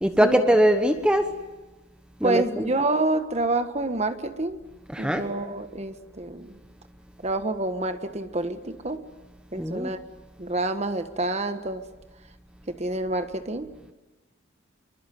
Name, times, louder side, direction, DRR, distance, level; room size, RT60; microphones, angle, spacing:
voice 1, 0.0-1.3 2.2-2.7 4.9-5.2 9.6-9.9, equal, 5° right, 7 dB, 1.1 m, -21 dB
voice 2, 2.2-4.6 5.0-6.6 7.2-9.0 9.5-10.0 10.4-11.8 12.7-13.7, right 2 dB, 30° right, 9 dB, 1.4 m, -28 dB
25.0 x 23.5 x 9.3 m, 1.1 s
head